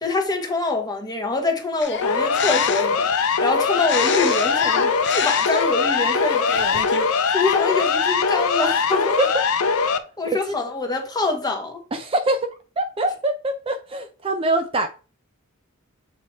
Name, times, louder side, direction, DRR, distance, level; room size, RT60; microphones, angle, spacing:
voice 1, 0.0-6.8 7.3-9.2 10.2-11.8, left 3 dB, 20° left, 1.2 m, -25 dB
sound 1, 1.8-3.0 3.8-7.1 7.3-7.9, left 6 dB, 55° left, 0.7 m, -29 dB
Siren, 2.0-10.0, left 5 dB, 90° left, 0.6 m, -21 dB
voice 2, 11.9-12.4 12.8-14.9, right 1 dB, 25° right, 0.5 m, -24 dB
7.4 x 2.9 x 4.3 m
head